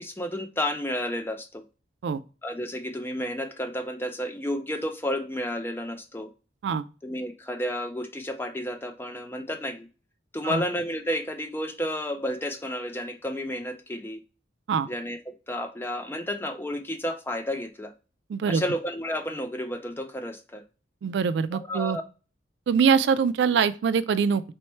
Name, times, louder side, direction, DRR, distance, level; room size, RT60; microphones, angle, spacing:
voice 1, 0.0-1.6 2.4-6.3 7.0-9.9 10.3-14.2 14.9-17.9 18.5-20.6 21.5-22.0, left 1 dB, 10° left, 0.4 m, -31 dB
voice 2, 18.3-18.6 21.0-22.0 22.7-24.5, right 6 dB, 65° right, 0.3 m, -23 dB
4.4 x 2.1 x 4.2 m
head